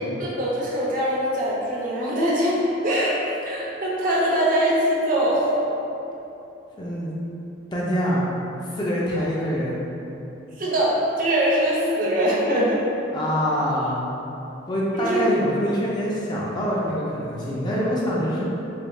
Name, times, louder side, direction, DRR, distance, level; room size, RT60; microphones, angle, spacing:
voice 1, 0.2-2.6 2.8-3.2 3.4-5.5 10.6-12.8 14.9-15.2, right 1 dB, 45° right, -6 dB, 0.6 m, -22 dB
voice 2, 6.8-7.1 7.7-8.2 8.6-9.8 13.1-14.1 14.7-18.4, equal, 25° left, -6 dB, 0.4 m, -25 dB
3.3 x 3.1 x 2.3 m, 3.0 s
head